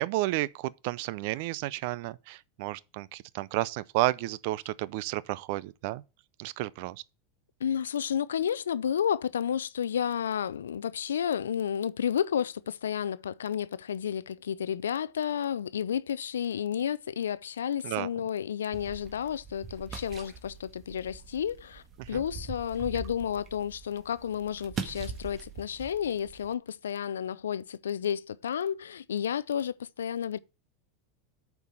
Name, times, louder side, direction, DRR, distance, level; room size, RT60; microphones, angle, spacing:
voice 1, 0.0-6.0 6.4-7.0 17.8-18.1 22.0-22.2, right 18 dB, 60° right, 0.5 m, -32 dB
voice 2, 7.6-30.4, left 8 dB, 85° left, 0.4 m, -31 dB
sound 1, 18.7-26.5, right 5 dB, 35° right, 1.5 m, -42 dB
8.2 x 4.6 x 7.0 m
hypercardioid pair, 95°, 0 cm